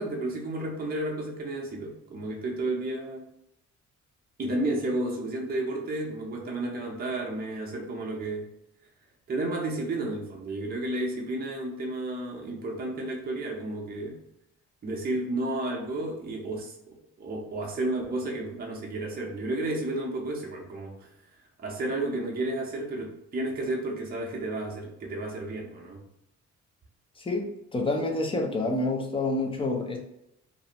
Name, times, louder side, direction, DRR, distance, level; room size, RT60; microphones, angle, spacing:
voice 1, 0.0-3.3 4.4-8.5 9.3-14.2 14.8-21.1 21.6-26.0, right 2 dB, 30° right, -1 dB, 0.6 m, -32 dB
voice 2, 27.2-30.0, left 2 dB, 20° left, 2 dB, 0.5 m, -28 dB
2.5 x 2.0 x 2.8 m, 0.82 s
cardioid pair, 90°, 30 cm